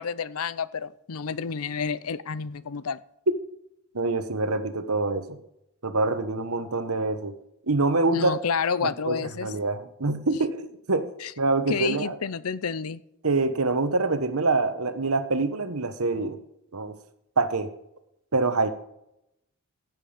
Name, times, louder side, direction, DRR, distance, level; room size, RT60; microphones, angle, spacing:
voice 1, 0.0-3.0 8.1-9.5 11.2-11.3 11.7-13.0, left 6 dB, 80° left, 17 dB, 0.6 m, -29 dB
voice 2, 3.9-5.4 5.8-7.3 7.7-8.3 8.8-11.1 11.4-12.2 13.2-16.4 16.7-17.0 17.4-17.7 18.3-18.7, right 3 dB, 85° right, 10 dB, 1.3 m, -25 dB
15.5 x 7.8 x 5.1 m, 0.82 s
head